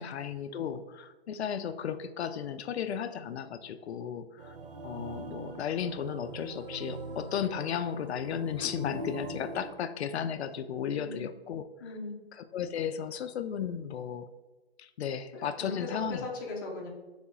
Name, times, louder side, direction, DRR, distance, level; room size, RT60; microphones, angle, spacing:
voice 1, 0.0-4.6 4.8-11.7 12.5-14.3 14.8-16.3, left 8 dB, 85° left, 10 dB, 0.5 m, -34 dB
sound 1, 4.4-9.7, right 2 dB, 60° right, 0.8 m, -42 dB
voice 2, 11.8-12.1 15.3-16.9, left 3 dB, 20° left, -2 dB, 0.6 m, -38 dB
4.1 x 3.4 x 3.7 m, 1.2 s
hypercardioid pair, 165°, 32 cm